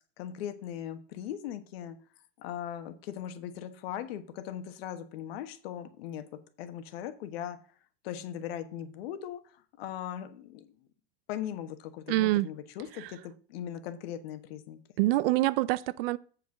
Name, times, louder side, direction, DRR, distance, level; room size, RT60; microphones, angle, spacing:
voice 1, 0.2-2.0 2.4-7.6 8.0-10.7 11.3-14.8, left 10 dB, 70° left, 1.4 m, -39 dB
voice 2, 12.1-12.5 13.0-13.1 15.0-16.2, right 18 dB, 65° right, 0.5 m, -26 dB
7.9 x 5.0 x 6.4 m
supercardioid pair, 145°, 31 cm